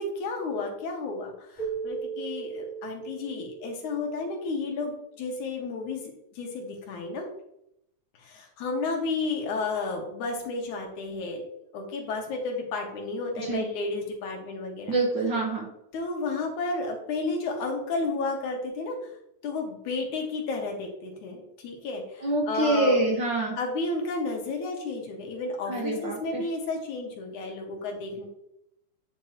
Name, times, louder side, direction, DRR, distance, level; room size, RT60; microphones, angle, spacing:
voice 1, 0.0-7.3 8.2-11.4 11.7-15.0 15.9-19.0 19.4-23.0 23.6-28.3, left 3 dB, 80° left, 1 dB, 3.0 m, -32 dB
Keyboard (musical), 1.6-4.8, right 7 dB, 25° right, 3.5 m, -38 dB
voice 2, 14.9-15.7 22.2-23.5 25.7-26.4, right 2 dB, 50° right, -1 dB, 1.6 m, -26 dB
8.9 x 7.1 x 3.0 m, 0.79 s
omnidirectional pair, 3.4 m